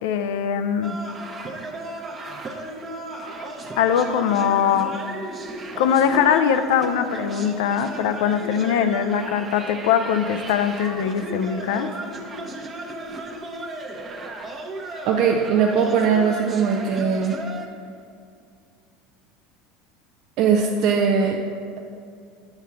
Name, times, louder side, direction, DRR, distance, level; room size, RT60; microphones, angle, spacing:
voice 1, 0.0-1.0 3.8-4.9 5.8-11.9, left 8 dB, 75° left, 9 dB, 0.4 m, -21 dB
sound 1, 0.8-17.7, right 2 dB, 30° right, 0.8 m, -35 dB
voice 2, 15.1-17.3 20.4-21.4, right 6 dB, 60° right, 1 dB, 0.5 m, -20 dB
7.8 x 3.6 x 5.7 m, 2.3 s
hypercardioid pair, 95°, 0 cm